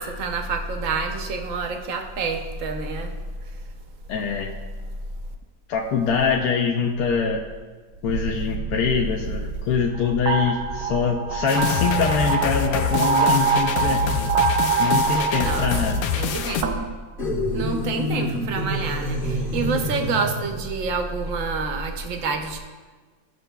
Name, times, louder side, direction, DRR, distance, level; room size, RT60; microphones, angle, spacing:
voice 1, 0.0-3.1 15.4-15.7 16.1-16.6 17.5-22.6, right 4 dB, 60° right, 4 dB, 0.9 m, -27 dB
voice 2, 4.1-4.5 5.7-7.4 8.0-14.2 14.5-16.1, left 6 dB, 70° left, 1 dB, 1.0 m, -24 dB
sound 1, 8.1-17.0, right 6 dB, 80° right, 1.3 m, -25 dB
sound 2, 11.5-16.6, left 6 dB, 85° left, 1.3 m, -26 dB
sound 3, 17.2-20.7, left 1 dB, 30° left, 1.3 m, -28 dB
13.5 x 6.7 x 2.2 m, 1.4 s
omnidirectional pair, 2.0 m